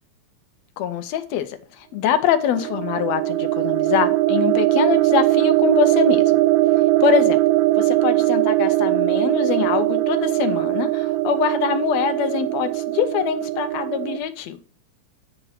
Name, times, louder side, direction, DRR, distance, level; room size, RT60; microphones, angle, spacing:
voice 1, 0.8-6.2 7.0-7.4 7.7-14.6, left 9 dB, 75° left, 8 dB, 1.6 m, -24 dB
sound 1, 2.3-14.2, right 17 dB, 85° right, 2.2 m, -20 dB
9.2 x 4.5 x 5.6 m, 0.39 s
omnidirectional pair, 3.9 m